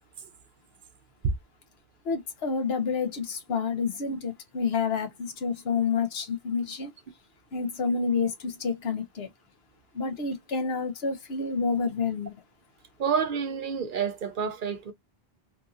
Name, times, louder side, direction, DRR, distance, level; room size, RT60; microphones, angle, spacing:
voice 1, 2.0-6.9 7.5-9.3 9.9-12.4, left 5 dB, 75° left, 1.0 m, -29 dB
voice 2, 13.0-14.9, right 7 dB, 60° right, 0.7 m, -29 dB
2.9 x 2.6 x 2.4 m
omnidirectional pair, 1.1 m